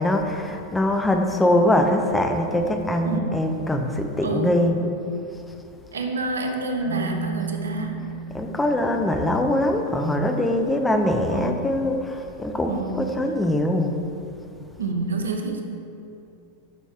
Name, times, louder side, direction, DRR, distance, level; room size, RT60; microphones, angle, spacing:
voice 1, 0.0-4.8 8.3-14.0, left 1 dB, 10° left, 4 dB, 0.7 m, -22 dB
voice 2, 4.2-4.7 5.9-8.1 11.3-11.7 12.7-13.2 14.8-15.6, right 3 dB, 70° right, 4 dB, 0.9 m, -28 dB
Marimba xylophone, 6.8-9.8, right 4 dB, 50° right, 1.4 m, -34 dB
9.1 x 6.2 x 3.6 m, 2.7 s
figure-of-eight pair, 90°, 0 cm